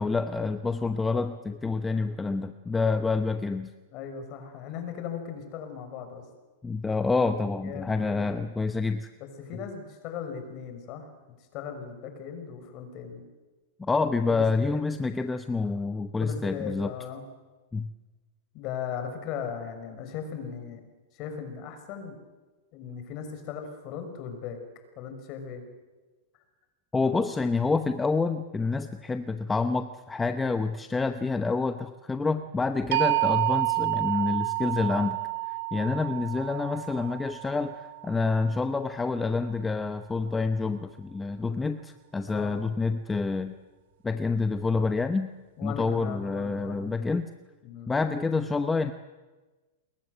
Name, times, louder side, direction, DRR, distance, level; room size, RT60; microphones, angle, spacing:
voice 1, 0.0-3.7 6.6-9.1 13.8-16.9 17.7-17.9 26.9-35.2 35.5-43.5 44.0-45.3 45.6-47.3 47.9-48.9, left 4 dB, 10° left, 9 dB, 0.9 m, -28 dB
voice 2, 3.9-6.2 7.6-8.4 9.2-11.1 11.5-13.2 14.3-14.8 16.2-17.2 18.5-20.8 21.1-22.2 22.7-24.6 25.0-25.6 42.2-42.7 45.6-47.0 47.6-47.9, left 7 dB, 40° left, 7 dB, 5.9 m, -38 dB
sound 1, 32.9-38.9, right 25 dB, 60° right, 2.0 m, -29 dB
29.0 x 22.0 x 8.1 m, 1.2 s
supercardioid pair, 145°, 0 cm